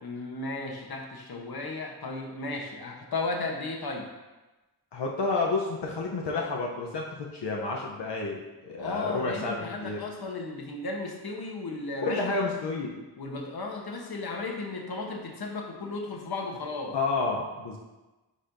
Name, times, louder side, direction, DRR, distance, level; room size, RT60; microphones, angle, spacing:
voice 1, 0.0-4.1 8.8-12.5 13.2-17.0, left 3 dB, 65° left, 1 dB, 1.0 m, -35 dB
voice 2, 4.9-8.4 8.6-10.0 12.0-13.0 16.9-17.8, left 3 dB, 90° left, -2 dB, 0.8 m, -30 dB
9.9 x 4.2 x 2.6 m, 1.1 s
wide cardioid pair, 85°, 40 cm